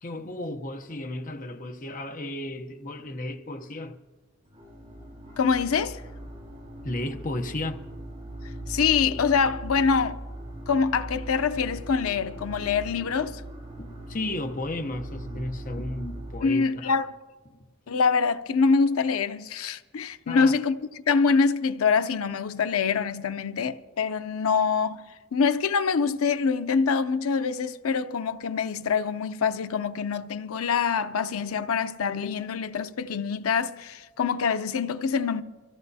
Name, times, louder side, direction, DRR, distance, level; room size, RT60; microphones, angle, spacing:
voice 1, 0.0-4.0 6.8-7.8 13.8-17.0 17.5-17.7 20.3-20.5, left 1 dB, 40° left, 0.8 m, -34 dB
sound 1, 4.5-16.4, right 1 dB, 35° right, 6.1 m, -40 dB
voice 2, 5.4-6.0 8.7-10.2 10.7-13.4 16.4-17.1 17.9-20.8 21.1-25.0 25.3-35.4, left 5 dB, 85° left, 0.6 m, -25 dB
24.0 x 15.0 x 2.7 m
head